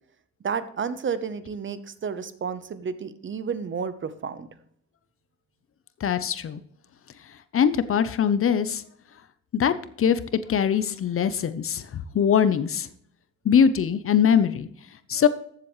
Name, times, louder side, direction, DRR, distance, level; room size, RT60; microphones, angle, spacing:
voice 1, 0.4-4.5, right 6 dB, 40° right, 13 dB, 0.9 m, -31 dB
voice 2, 6.0-6.6 7.5-8.8 9.5-10.2 10.5-12.9 13.4-14.7 15.1-15.3, left 8 dB, 45° left, 13 dB, 0.7 m, -22 dB
14.0 x 7.6 x 3.1 m, 0.66 s
cardioid pair, 90°, 30 cm